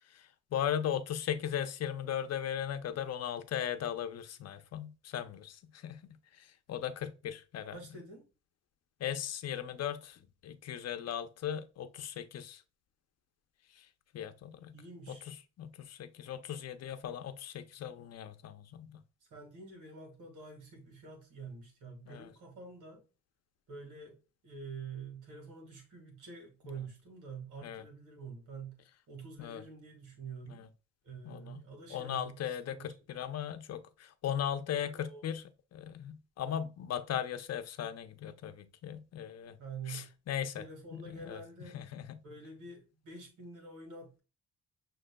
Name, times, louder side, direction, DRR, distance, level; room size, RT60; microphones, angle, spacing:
voice 1, 0.1-6.0 6.3-7.8 9.0-12.6 13.8-13.9 14.1-14.8 15.3-19.0 22.1-22.3 27.6-27.8 29.4-29.6 30.5-30.7 31.2-31.6 31.9-35.4 35.7-39.6 39.9-40.6 40.9-41.4 41.7-42.2, left 9 dB, 55° left, 0.7 m, -38 dB
voice 2, 7.7-8.3 14.7-15.3 19.3-23.0 23.7-24.2 24.4-30.6 31.0-32.9 34.7-35.3 39.6-40.1 40.6-41.8 42.2-44.2, right 4 dB, 80° right, 1.9 m, -47 dB
6.3 x 3.2 x 2.2 m
cardioid pair, 90°, 30 cm